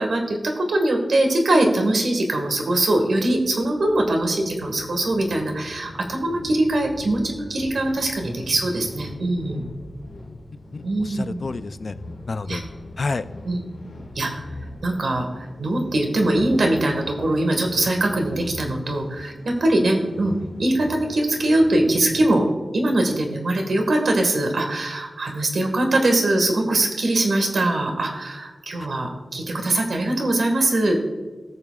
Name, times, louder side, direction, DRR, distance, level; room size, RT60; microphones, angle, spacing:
voice 1, 0.0-9.6 10.8-11.4 12.5-12.6 13.5-13.6 14.2-14.5 14.8-22.5 22.7-31.0, right 1 dB, 80° right, 3 dB, 1.7 m, -22 dB
sound 1, 3.2-22.4, left 1 dB, 85° left, 1.9 m, -41 dB
voice 2, 10.5-12.0 12.3-12.6 13.0-13.3 28.8-28.9, left 3 dB, 55° left, 12 dB, 0.4 m, -30 dB
19.0 x 6.9 x 2.4 m, 1.3 s
wide cardioid pair, 105°, 0 cm